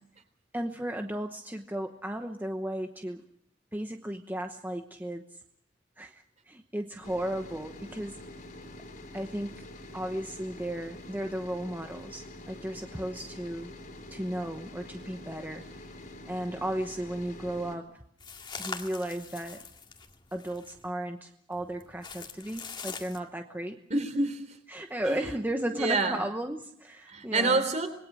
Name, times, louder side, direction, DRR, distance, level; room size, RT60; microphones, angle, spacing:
voice 1, 0.5-3.2 3.7-5.2 6.0-8.2 9.1-9.6 9.9-13.7 14.1-16.0 16.3-18.0 18.6-19.6 20.3-23.8 24.7-27.6, right 1 dB, 10° right, 5 dB, 1.0 m, -35 dB
sound 1, 7.0-17.8, left 1 dB, 45° left, 3.4 m, -46 dB
sound 2, 18.2-20.9 21.5-23.2, left 5 dB, 25° left, 2.0 m, -43 dB
voice 2, 23.9-24.4 25.0-25.2 25.7-26.2 27.1-27.9, right 3 dB, 40° right, 9 dB, 3.5 m, -27 dB
26.0 x 21.0 x 6.2 m, 0.68 s
head